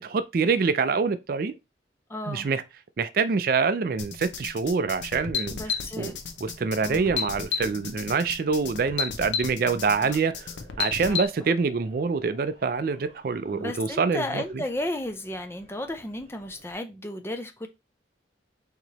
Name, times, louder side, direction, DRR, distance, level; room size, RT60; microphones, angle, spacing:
voice 1, 0.0-1.6 2.3-2.6 3.0-6.1 6.4-10.5 10.8-14.6, right 5 dB, 50° right, 0.4 m, -26 dB
voice 2, 2.1-2.5 5.5-6.1 6.8-7.1 10.0-10.2 11.1-11.2 13.5-17.7, left 1 dB, 15° left, 0.5 m, -34 dB
sound 1, 4.0-11.3, left 6 dB, 80° left, 0.7 m, -32 dB
sound 2, 4.9-16.8, right 1 dB, 35° right, 2.1 m, -55 dB
4.6 x 2.9 x 3.9 m
head